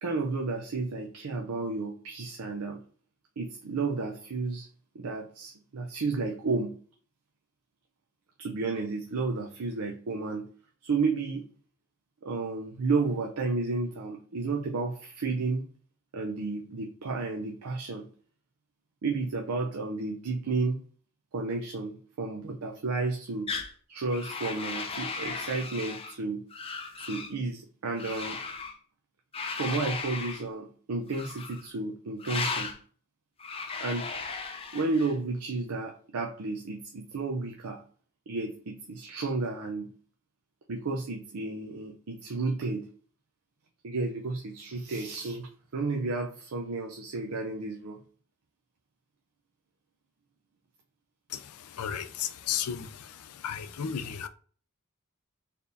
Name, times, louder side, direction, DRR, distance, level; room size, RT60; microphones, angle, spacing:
voice 1, 0.0-2.8 3.4-4.7 4.9-6.8 8.4-10.5 10.8-11.5 12.2-15.7 16.1-18.1 19.0-20.8 21.3-23.5 23.9-26.4 27.0-28.4 29.5-32.7 33.8-34.1 34.7-37.8 38.3-39.9 40.7-42.9 43.8-48.0, right 3 dB, 85° right, 0.6 m, -32 dB
sound 1, 23.5-23.7 24.1-26.2 26.5-27.3 28.0-28.8 29.3-30.5 31.1-31.7 32.2-32.8 33.4-35.2, left 4 dB, 25° left, 0.5 m, -36 dB
voice 2, 51.7-53.2 53.4-54.3, left 8 dB, 90° left, 0.4 m, -33 dB
4.2 x 3.5 x 2.6 m
head